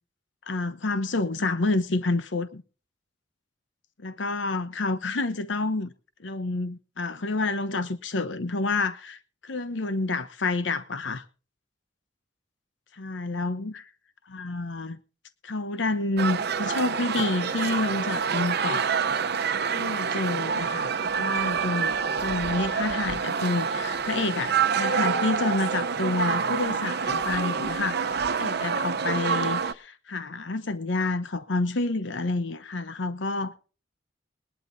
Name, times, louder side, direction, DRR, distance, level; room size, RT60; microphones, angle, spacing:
voice 1, 0.5-2.6 4.0-5.9 6.2-11.2 12.9-13.8 14.3-15.0 15.4-18.9 19.7-21.9 22.2-33.5, left 2 dB, 85° left, 0.8 m, -29 dB
sound 1, 16.2-29.7, right 6 dB, 60° right, 0.8 m, -27 dB
20.5 x 12.0 x 2.6 m
head